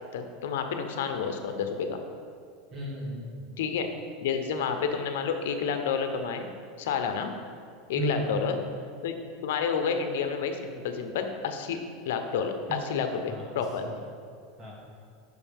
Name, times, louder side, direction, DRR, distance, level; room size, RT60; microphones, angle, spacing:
voice 1, 0.1-2.0 3.6-3.9 4.2-6.5 6.8-7.3 7.9-8.6 9.0-9.2 9.4-13.8, left 6 dB, 80° left, 6 dB, 0.9 m, -30 dB
voice 2, 2.7-3.3 7.9-8.4 12.7-12.8 13.2-14.0 14.6-14.7, right 1 dB, 30° right, -4 dB, 2.5 m, -35 dB
12.0 x 6.4 x 3.5 m, 2.2 s
supercardioid pair, 135°, 0 cm